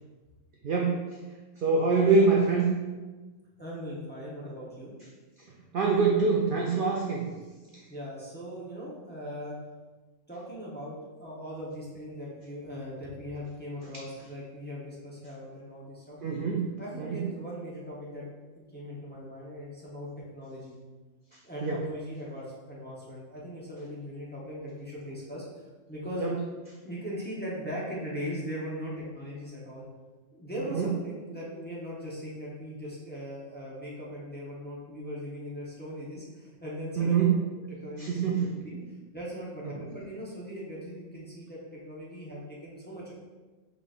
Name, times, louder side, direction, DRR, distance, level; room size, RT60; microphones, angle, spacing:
voice 1, 0.6-1.0 1.6-2.7 5.7-7.3 16.2-16.7 17.0-17.2 21.6-21.8 26.2-26.3 30.7-30.9 37.0-37.3 38.0-38.5, right 4 dB, 60° right, -1 dB, 0.5 m, -24 dB
voice 2, 3.6-4.9 7.9-9.6 10.3-16.2 16.8-18.2 18.6-20.8 21.4-25.4 25.9-26.3 26.8-29.8 30.3-37.3 37.8-38.8 39.1-43.1, equal, 10° left, -6 dB, 0.8 m, -39 dB
4.9 x 3.9 x 2.5 m, 1.3 s
omnidirectional pair, 1.3 m